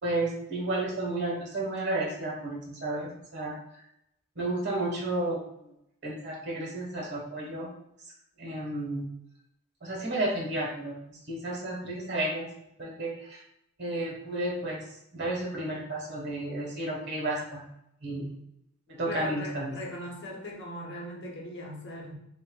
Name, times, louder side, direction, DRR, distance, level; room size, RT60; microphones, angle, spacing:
voice 1, 0.0-3.5 4.3-5.7 6.0-7.7 8.4-9.0 9.8-12.5 12.8-13.4 13.8-14.8 15.1-17.6 18.0-18.3 18.9-19.7, right 2 dB, 55° right, -2 dB, 1.3 m, -32 dB
voice 2, 19.1-22.1, left 1 dB, 55° left, -1 dB, 0.9 m, -39 dB
6.5 x 2.4 x 2.3 m, 0.77 s
head